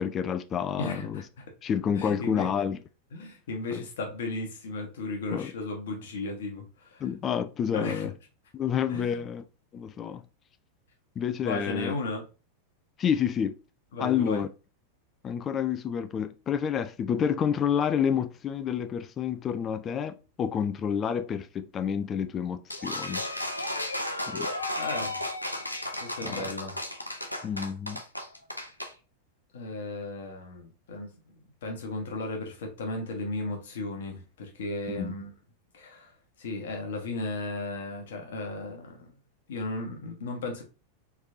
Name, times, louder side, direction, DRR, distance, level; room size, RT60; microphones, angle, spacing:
voice 1, 0.0-1.2 1.6-2.8 3.7-3.8 5.3-5.5 7.0-8.1 8.5-9.4 9.7-10.2 11.2-11.9 13.0-13.6 14.0-14.5 15.2-23.2 24.3-24.5 26.2-26.5 27.4-28.0 35.0-35.1, left 8 dB, 25° left, 0.3 m, -29 dB
voice 2, 0.8-1.4 1.9-2.5 3.1-7.1 7.7-8.1 8.9-9.2 11.4-12.2 13.9-14.4 24.7-25.2 26.0-26.8 29.5-31.1 31.6-35.3 35.7-39.2 39.5-40.6, left 2 dB, 60° left, 1.1 m, -35 dB
sound 1, 22.7-28.9, left 1 dB, 85° left, 0.5 m, -34 dB
3.3 x 3.2 x 2.6 m
figure-of-eight pair, 90°, 0 cm